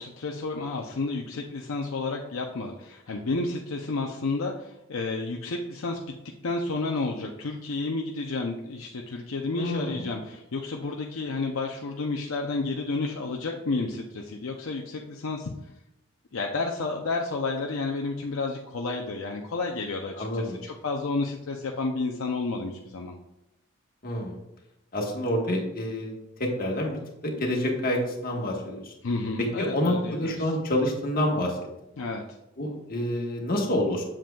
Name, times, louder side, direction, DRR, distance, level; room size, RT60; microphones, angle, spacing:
voice 1, 0.0-6.1 6.4-15.5 16.3-23.1 29.0-30.5 32.0-32.2, left 3 dB, 65° left, 1 dB, 0.6 m, -31 dB
voice 2, 9.5-10.1 20.2-20.6 24.0-24.3 24.9-26.9 27.2-28.9 29.4-31.6 32.6-34.0, left 1 dB, 45° left, 0 dB, 1.4 m, -28 dB
7.5 x 7.3 x 2.3 m, 0.91 s
head